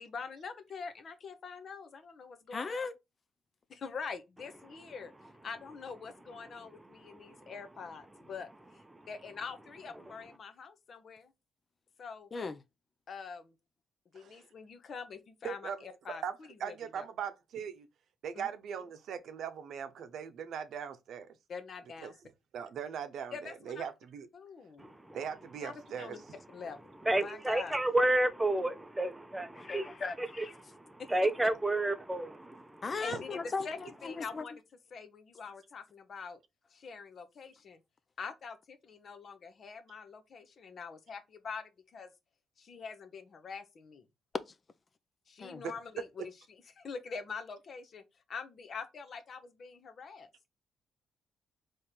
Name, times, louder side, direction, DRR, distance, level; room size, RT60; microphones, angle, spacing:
voice 1, 0.0-2.8 3.7-5.1 5.4-8.5 9.1-11.3 12.0-12.3 13.1-13.5 14.1-16.2 16.6-17.0 18.3-18.5 21.5-22.1 23.3-23.9 24.3-24.9 25.6-26.2 26.5-26.8 27.1-27.8 33.0-34.6 34.9-36.4 36.7-37.8 38.2-42.1 42.6-44.0 45.3-46.1 46.7-48.0 48.3-50.3, left 5 dB, 50° left, 0.9 m, -44 dB
voice 2, 2.5-3.0 12.3-12.6 29.5-30.6 32.8-34.4 44.5-44.6 45.4-45.6, left 4 dB, 35° left, 0.5 m, -38 dB
voice 3, 14.1-14.5 15.4-15.8 16.1-16.3 16.6-17.9 18.2-21.3 22.0-22.1 22.5-24.3 25.1-26.2 33.1-33.2 45.6-45.7, right 7 dB, 70° right, 0.7 m, -40 dB
voice 4, 27.1-29.9 31.1-32.6, right 1 dB, 10° right, 0.6 m, -30 dB
3.7 x 3.2 x 4.3 m
cardioid pair, 90°, 0 cm